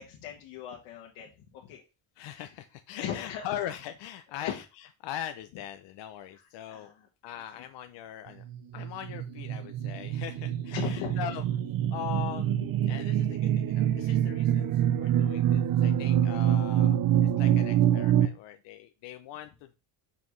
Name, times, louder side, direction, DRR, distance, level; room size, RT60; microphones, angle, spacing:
voice 1, 0.0-1.8 2.9-3.6 4.3-4.6 6.3-7.1 10.7-11.2 12.1-12.7 15.3-15.4, left 9 dB, 85° left, -1 dB, 1.5 m, -39 dB
voice 2, 2.2-4.6 5.0-6.9 7.2-8.4 8.7-11.4 11.9-12.5 12.8-17.0 17.4-19.7, left 11 dB, 60° left, 8 dB, 0.7 m, -40 dB
sound 1, 8.5-18.3, right 11 dB, 45° right, 0.6 m, -26 dB
7.1 x 5.8 x 3.2 m, 0.30 s
cardioid pair, 135°, 48 cm